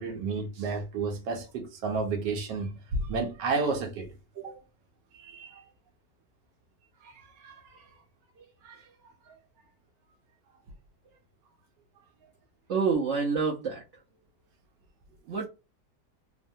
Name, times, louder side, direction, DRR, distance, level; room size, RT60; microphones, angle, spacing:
voice 1, 0.0-4.6 5.1-5.6 7.0-7.9 8.4-8.9 9.3-9.4, right 4 dB, 85° right, 1.3 m, -33 dB
voice 2, 12.7-13.8 15.3-15.5, right 5 dB, 65° right, 0.7 m, -27 dB
3.3 x 2.1 x 2.6 m
omnidirectional pair, 1.8 m